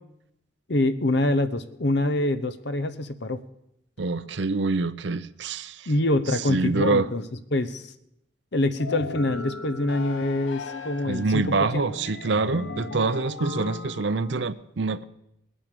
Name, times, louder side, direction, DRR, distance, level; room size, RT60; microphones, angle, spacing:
voice 1, 0.7-3.4 5.9-7.3 7.5-7.9 8.5-11.8, left 2 dB, 55° left, 12 dB, 0.9 m, -25 dB
voice 2, 4.0-5.9 6.5-7.1 11.1-15.0, right 3 dB, 65° right, 12 dB, 0.6 m, -26 dB
sound 1, 8.8-14.5, left 3 dB, 80° left, 1.1 m, -37 dB
19.5 x 9.0 x 6.7 m, 0.81 s
head